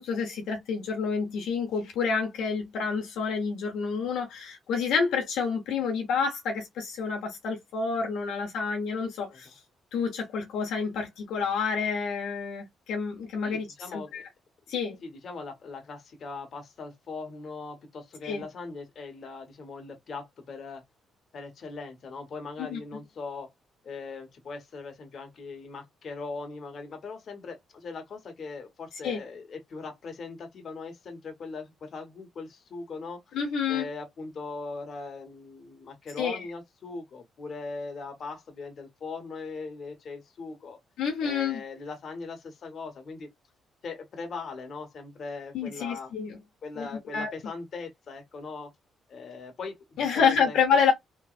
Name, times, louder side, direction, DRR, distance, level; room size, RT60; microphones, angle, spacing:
voice 1, 0.0-9.5 9.9-13.7 13.9-14.3 14.7-15.0 18.2-18.4 22.6-22.8 29.0-29.2 33.3-33.9 36.2-36.5 41.0-41.6 45.5-46.4 46.8-47.3 50.0-50.9, left 6 dB, 85° left, 1.0 m, -28 dB
voice 2, 13.4-14.3 15.0-20.8 21.3-23.5 23.8-33.4 33.7-40.8 41.2-43.3 43.8-46.1 46.6-48.7 49.1-50.8, left 4 dB, 55° left, 1.2 m, -40 dB
3.2 x 3.0 x 2.5 m
cardioid pair, 90°, 0 cm